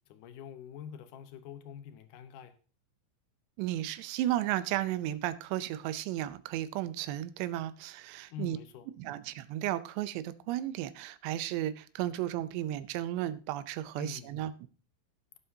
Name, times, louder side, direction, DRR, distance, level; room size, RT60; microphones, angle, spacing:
voice 1, 0.1-2.5 8.3-8.9 14.0-14.3, left 8 dB, 85° left, 1.8 m, -45 dB
voice 2, 3.6-8.6 9.0-14.5, right 13 dB, 85° right, 2.9 m, -34 dB
17.5 x 7.9 x 2.8 m
omnidirectional pair, 4.8 m